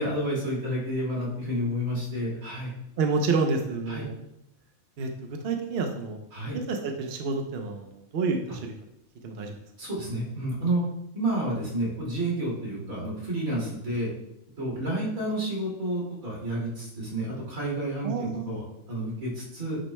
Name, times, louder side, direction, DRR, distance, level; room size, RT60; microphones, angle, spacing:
voice 1, 0.0-2.7 3.9-4.0 6.3-6.6 9.8-10.8 11.1-14.1 14.6-19.8, right 1 dB, 75° right, -4 dB, 2.9 m, -30 dB
voice 2, 3.0-4.2 5.0-6.2 6.5-8.7 9.2-9.6 18.0-18.6, right 4 dB, 55° right, 3 dB, 0.8 m, -29 dB
9.6 x 6.0 x 2.2 m, 0.81 s
omnidirectional pair, 1.5 m